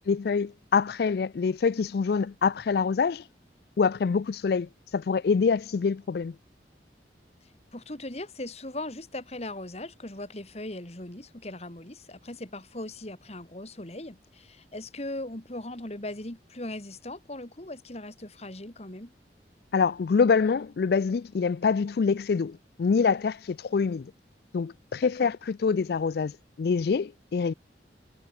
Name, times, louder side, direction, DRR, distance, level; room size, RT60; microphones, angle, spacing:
voice 1, 0.1-3.3 3.8-6.3 19.7-24.1 24.5-27.5, left 5 dB, 60° left, 0.4 m, -25 dB
voice 2, 7.7-19.1 25.0-25.3, left 1 dB, 35° left, 2.6 m, -39 dB
head